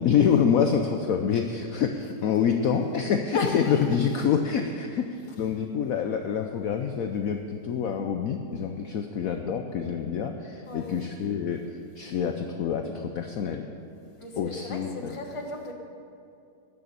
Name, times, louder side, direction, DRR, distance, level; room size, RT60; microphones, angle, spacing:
voice 1, 0.0-13.7 14.4-15.1, left 7 dB, 65° left, 5 dB, 0.9 m, -26 dB
voice 2, 3.3-4.2 5.3-5.5 10.7-10.9 14.2-15.7, left 2 dB, 20° left, 2 dB, 1.1 m, -35 dB
13.5 x 6.7 x 8.6 m, 2.5 s
omnidirectional pair, 1.9 m